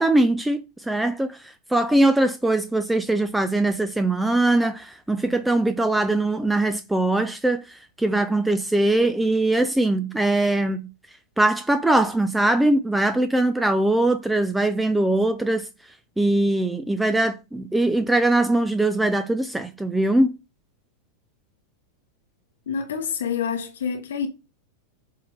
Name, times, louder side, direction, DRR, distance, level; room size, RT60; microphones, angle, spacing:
voice 1, 0.0-10.9 11.4-15.7 16.2-20.3, right 2 dB, 5° right, 0.6 m, -21 dB
voice 2, 22.7-24.3, left 7 dB, 80° left, 0.9 m, -27 dB
7.6 x 4.0 x 3.3 m
hypercardioid pair, 105°, 0 cm